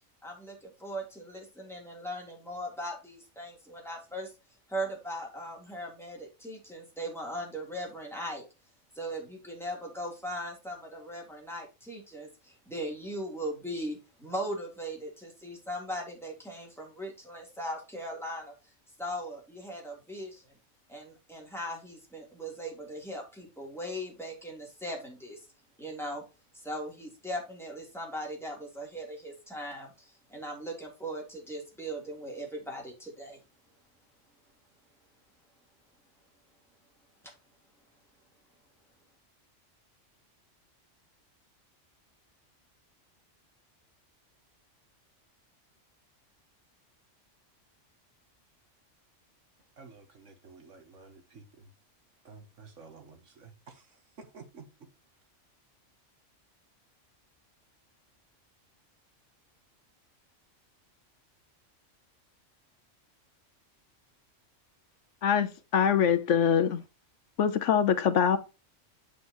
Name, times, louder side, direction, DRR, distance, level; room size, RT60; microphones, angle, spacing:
voice 1, 0.2-4.3 4.7-8.4 8.9-18.5 19.0-20.5 20.9-25.4 25.8-26.2 26.5-33.4, equal, ahead, 3.2 m, -39 dB
voice 2, 49.8-51.7 52.3-53.8 54.2-54.7, right 4 dB, 75° right, 1.8 m, -51 dB
voice 3, 65.2-66.8 67.4-68.4, left 8 dB, 75° left, 1.1 m, -24 dB
7.5 x 7.3 x 3.0 m
omnidirectional pair, 1.3 m